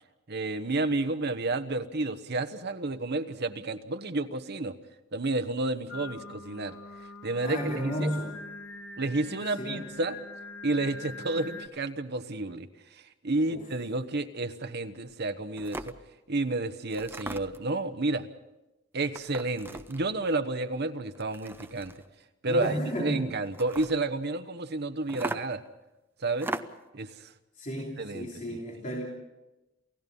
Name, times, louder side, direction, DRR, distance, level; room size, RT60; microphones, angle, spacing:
voice 1, 0.3-4.7 5.1-6.8 7.2-8.1 9.0-10.2 10.6-15.9 16.3-18.3 18.9-21.9 22.4-25.6 26.2-26.5 26.9-27.3 28.0-28.6, right 2 dB, 55° right, 8 dB, 1.1 m, -31 dB
Singing, 5.9-11.7, left 3 dB, 55° left, 1.6 m, -43 dB
voice 2, 7.4-8.4 9.6-9.9 13.5-13.7 22.4-23.2 27.6-29.1, equal, 40° left, -1 dB, 3.1 m, -33 dB
sound 1, 15.1-15.2 15.6-16.0 16.9-17.7 19.0-20.1 21.1-22.1 23.5-24.0 25.1-25.7 26.3-26.9, right 2 dB, 10° right, 0.7 m, -38 dB
28.5 x 16.5 x 5.5 m, 1.0 s
head